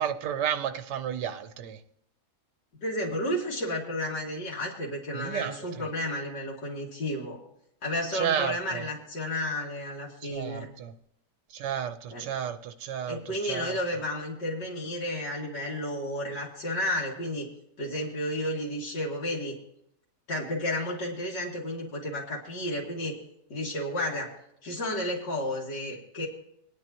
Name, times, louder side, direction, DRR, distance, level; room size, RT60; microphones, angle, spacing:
voice 1, 0.0-1.8 5.1-5.6 8.1-8.8 10.3-10.9 11.5-13.2 13.5-13.8, right 9 dB, 75° right, 9 dB, 1.4 m, -31 dB
voice 2, 2.8-7.4 7.8-10.7 12.1-12.3 13.1-17.5 17.8-19.6 20.3-23.2 23.5-24.3 24.6-26.3, left 1 dB, 85° left, -5 dB, 2.6 m, -32 dB
23.0 x 9.6 x 3.0 m, 0.75 s
omnidirectional pair, 1.8 m